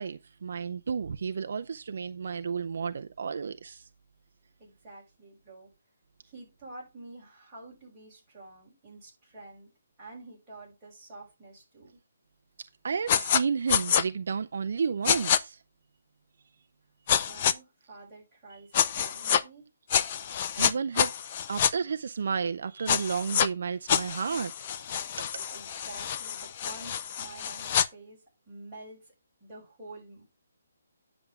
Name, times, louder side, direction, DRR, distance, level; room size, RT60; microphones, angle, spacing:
voice 1, 0.0-3.9 12.8-15.6 18.5-18.6 20.5-21.2 21.5-24.7 25.2-25.5, right 6 dB, 45° right, 0.5 m, -32 dB
voice 2, 4.6-5.7 6.2-9.7 10.0-12.0 17.2-19.7 25.5-29.1 29.4-30.2, right 2 dB, 5° right, 6.5 m, -48 dB
sound 1, 13.1-13.4 13.7-14.0 15.0-15.4 17.1-17.5 18.7-19.4 19.9-21.7 22.9-23.5 23.9-27.9, left 9 dB, 25° left, 0.4 m, -27 dB
10.0 x 6.9 x 3.6 m
hypercardioid pair, 180°, 0 cm